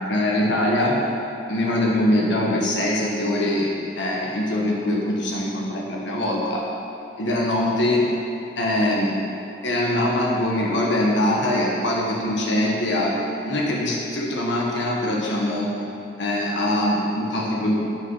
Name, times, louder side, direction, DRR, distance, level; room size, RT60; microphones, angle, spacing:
voice 1, 0.1-1.0 1.5-6.7 7.2-8.1 8.6-9.2 9.6-13.1 13.4-15.7 16.2-17.7, left 1 dB, 70° left, -2 dB, 1.2 m, -22 dB
8.7 x 6.5 x 5.5 m, 2.9 s
head